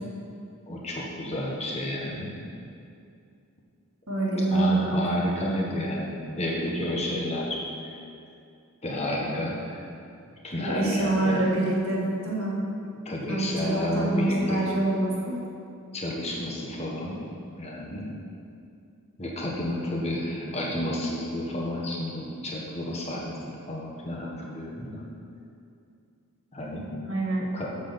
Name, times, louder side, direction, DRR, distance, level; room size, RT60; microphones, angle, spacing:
voice 1, 0.7-2.3 4.5-7.9 8.8-9.8 10.4-11.4 13.0-14.6 15.9-17.2 17.6-18.1 19.2-25.0 26.5-26.9 27.5-27.7, left 1 dB, 30° left, -3 dB, 1.4 m, -31 dB
voice 2, 4.1-5.0 10.6-12.6 13.3-15.4 27.1-27.5, right 2 dB, 65° right, -4 dB, 2.0 m, -26 dB
7.4 x 6.1 x 7.0 m, 2.5 s
head